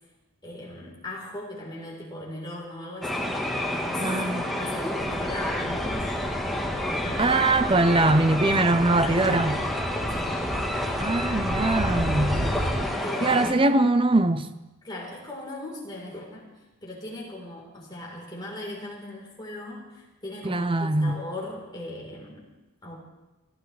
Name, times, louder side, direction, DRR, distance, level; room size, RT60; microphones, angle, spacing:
voice 1, 0.4-3.4 3.7-6.1 6.9-7.6 9.0-9.7 10.1-10.4 11.6-12.3 13.0-13.7 14.8-16.5 16.8-20.7 21.0-22.5 22.8-23.0, left 1 dB, 20° left, 4.0 m, -38 dB
sound 1, 3.0-13.5, left 1 dB, ahead, 1.4 m, -29 dB
voice 2, 4.0-4.4 7.2-9.6 11.0-12.4 13.2-14.5 20.4-21.2, right 2 dB, 25° right, 0.6 m, -22 dB
sound 2, 5.0-12.8, equal, 80° right, 3.5 m, -34 dB
29.5 x 12.5 x 3.4 m
head